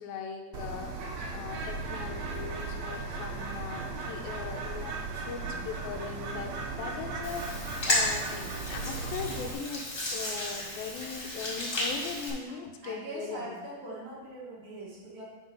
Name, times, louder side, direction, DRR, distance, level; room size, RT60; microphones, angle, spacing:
voice 1, 0.0-13.7, left 6 dB, 80° left, 4 dB, 2.4 m, -40 dB
Bird, 0.5-9.5, right 3 dB, 85° right, 1.5 m, -37 dB
Hands, 7.2-12.3, left 1 dB, 30° left, 1.6 m, -33 dB
voice 2, 12.8-15.2, right 2 dB, 55° right, -6 dB, 2.8 m, -42 dB
9.6 x 4.0 x 5.3 m, 1.3 s
omnidirectional pair, 4.4 m